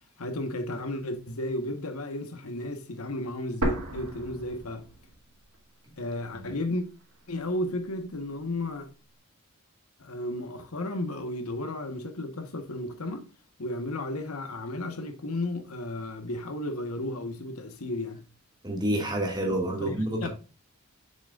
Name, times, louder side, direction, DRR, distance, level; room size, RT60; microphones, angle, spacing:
voice 1, 0.2-4.9 6.0-6.8 7.3-8.9 10.0-13.3 13.6-18.2 19.8-19.9 20.2-20.3, left 1 dB, 85° left, 1.2 m, -33 dB
sound 1, 3.6-5.6 5.8-5.9 6.7-7.6, right 1 dB, 80° right, 2.5 m, -33 dB
voice 2, 18.6-20.3, right 1 dB, 20° right, 1.9 m, -28 dB
7.0 x 6.5 x 2.4 m
head